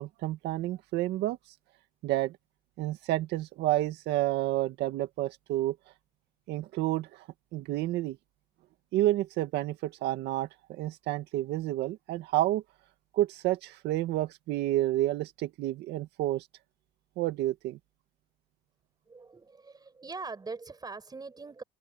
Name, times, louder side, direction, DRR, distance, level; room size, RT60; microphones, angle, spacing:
voice 1, 0.0-1.4 2.0-2.3 2.8-5.8 6.5-7.2 7.5-8.2 8.9-12.6 13.1-16.4 17.2-17.8, right 15 dB, 85° right, 2.0 m, -30 dB
voice 2, 19.1-21.6, right 4 dB, 25° right, 7.0 m, -42 dB
open air
cardioid pair, 110°, 17 cm